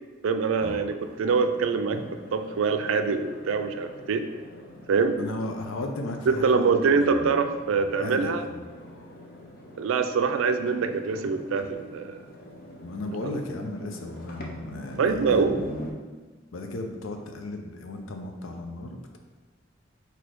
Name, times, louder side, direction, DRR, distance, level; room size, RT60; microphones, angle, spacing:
voice 1, 0.2-2.0 2.3-4.3 4.9-5.2 6.4-8.5 9.8-12.2 15.0-15.6, right 5 dB, 85° right, 8 dB, 0.4 m, -24 dB
sound 1, 1.0-15.9, equal, 50° left, 0.7 m, -43 dB
voice 2, 5.2-7.4 7.9-8.7 12.8-15.7 16.5-19.2, left 2 dB, 90° left, 4 dB, 0.6 m, -36 dB
4.2 x 2.8 x 4.6 m, 1.3 s
head